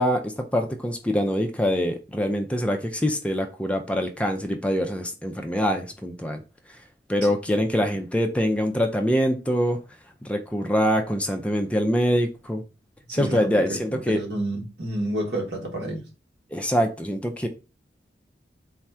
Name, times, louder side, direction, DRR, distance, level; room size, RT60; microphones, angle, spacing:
voice 1, 0.0-6.4 7.1-9.8 10.2-12.6 13.1-14.2 16.5-17.5, equal, 5° left, 0.4 m, -24 dB
voice 2, 13.1-16.0, right 1 dB, 75° right, 1.4 m, -30 dB
4.1 x 2.3 x 4.3 m
head